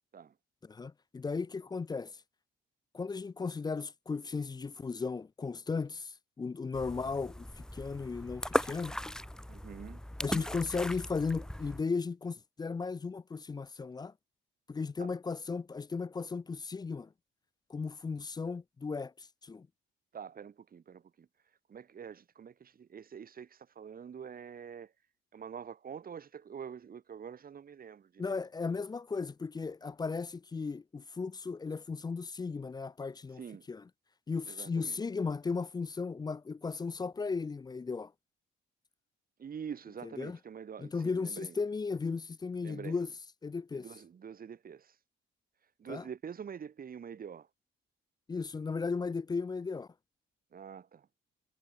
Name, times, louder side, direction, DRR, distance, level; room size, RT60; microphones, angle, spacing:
voice 1, 0.7-2.1 2.9-9.0 10.2-14.1 14.7-17.1 17.7-19.7 28.2-33.4 33.7-33.8 34.3-38.1 40.2-40.4 40.8-43.1 43.4-43.9 45.9-46.0 48.3-49.9, left 4 dB, 20° left, 0.4 m, -36 dB
sound 1, 6.7-11.8, left 1 dB, 5° left, 0.9 m, -37 dB
voice 2, 9.5-10.0 15.0-15.1 20.1-21.3 21.7-24.9 25.3-28.4 33.4-33.7 34.5-35.0 39.4-41.6 42.6-43.0 43.7-45.0 45.8-47.5 50.5-51.1, right 7 dB, 45° right, 2.3 m, -46 dB
cardioid pair, 90°, 20 cm